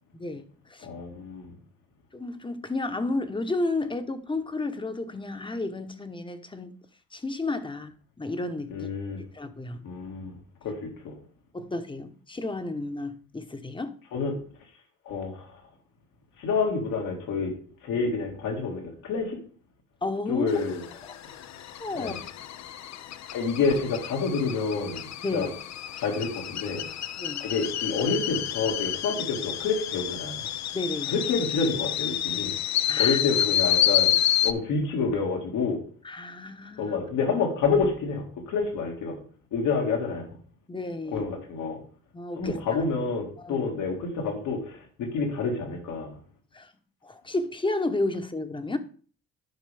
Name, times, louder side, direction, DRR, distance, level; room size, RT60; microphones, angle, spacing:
voice 1, 0.1-0.9 2.1-6.7 7.1-7.9 8.2-8.9 9.3-9.9 11.5-13.9 20.0-20.5 21.1-21.2 21.8-22.1 25.2-25.5 27.2-27.4 30.7-31.1 32.9-33.2 36.0-37.0 40.7-41.3 42.1-42.6 43.4-43.7 46.5-46.7 47.0-48.8, left 2 dB, 15° left, 1.0 m, -32 dB
voice 2, 0.8-1.5 8.7-9.2 9.8-11.1 14.1-14.4 15.1-15.6 16.4-17.5 17.8-19.4 20.3-20.8 22.0-22.2 23.3-25.5 26.0-26.9 27.4-30.4 31.1-32.5 33.0-34.1 34.4-35.8 36.8-39.2 39.5-40.3 41.1-41.8 42.4-46.1, left 4 dB, 85° left, 2.1 m, -28 dB
sound 1, 20.5-34.5, left 11 dB, 65° left, 0.6 m, -29 dB
12.0 x 5.1 x 3.4 m
cardioid pair, 90°, 30 cm